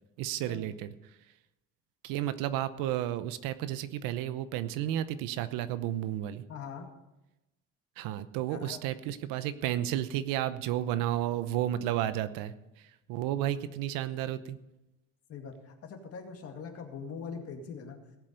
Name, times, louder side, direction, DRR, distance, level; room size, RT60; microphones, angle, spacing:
voice 1, 0.2-0.9 2.0-6.4 8.0-12.5 13.1-14.6, right 12 dB, 90° right, 13 dB, 0.9 m, -32 dB
voice 2, 6.5-6.9 8.5-8.8 15.3-18.0, left 6 dB, 45° left, 4 dB, 2.1 m, -42 dB
17.5 x 7.7 x 5.3 m, 0.95 s
cardioid pair, 135°, 32 cm